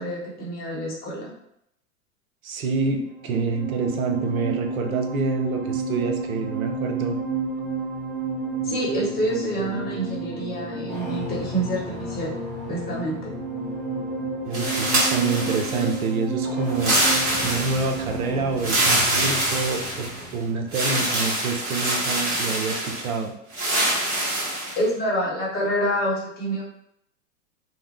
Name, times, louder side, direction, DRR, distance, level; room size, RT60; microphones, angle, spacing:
voice 1, 0.0-1.3 8.6-12.3 12.7-13.3 24.8-26.6, equal, 20° left, -5 dB, 1.1 m, -27 dB
voice 2, 2.4-7.2 14.4-17.0 17.4-23.3, right 4 dB, 75° right, 3 dB, 0.7 m, -27 dB
sound 1, 3.0-21.5, right 3 dB, ahead, 0.7 m, -31 dB
sound 2, 14.5-16.0 16.7-18.0 18.6-20.2 20.7-23.1 23.5-24.8, right 1 dB, 30° right, 1.2 m, -24 dB
2.7 x 2.1 x 3.2 m, 0.75 s
hypercardioid pair, 110°, 42 cm